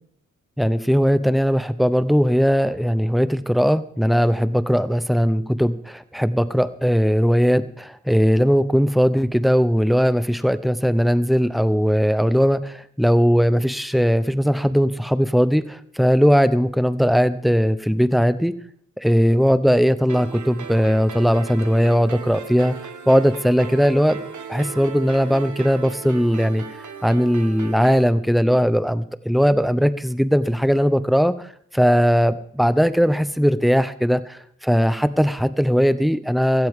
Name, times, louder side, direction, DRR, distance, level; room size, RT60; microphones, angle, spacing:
voice 1, 0.6-18.5 19.0-22.7 23.1-24.2 24.5-26.6 27.0-31.3 31.7-36.7, equal, ahead, 13 dB, 0.7 m, -19 dB
sound 1, 20.1-28.1, right 6 dB, 70° right, 1.3 m, -37 dB
16.0 x 14.5 x 3.7 m, 0.64 s
wide cardioid pair, 85°, 31 cm